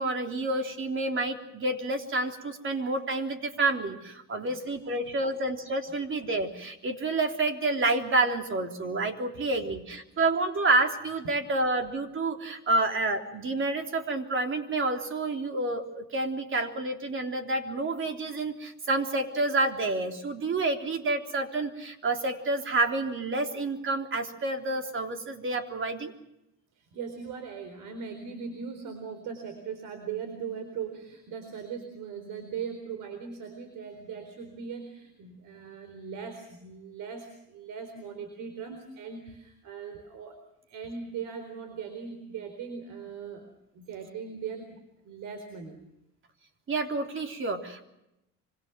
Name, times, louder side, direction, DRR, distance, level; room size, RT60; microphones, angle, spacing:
voice 1, 0.0-26.1 46.7-47.8, right 2 dB, 40° right, 5 dB, 3.6 m, -29 dB
voice 2, 26.7-40.4 40.7-44.8 45.0-45.8, right 6 dB, 75° right, 8 dB, 4.3 m, -39 dB
26.0 x 25.5 x 5.9 m, 0.86 s
cardioid pair, 120°, 32 cm